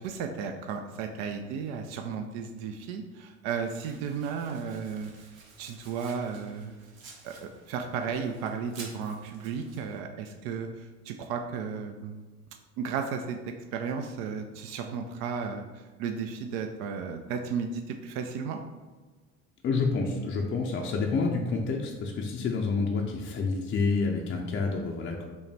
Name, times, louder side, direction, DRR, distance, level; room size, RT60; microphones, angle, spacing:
voice 1, 0.0-5.1 5.6-6.8 7.2-12.2 12.8-13.4 13.7-18.6, right 6 dB, 55° right, 5 dB, 0.4 m, -34 dB
Domestic sounds home sounds, 3.6-10.0, right 4 dB, 80° right, 0.8 m, -52 dB
voice 2, 19.6-25.2, left 4 dB, 30° left, 0 dB, 0.5 m, -28 dB
5.3 x 2.1 x 3.3 m, 1.3 s
figure-of-eight pair, 65°, 40 cm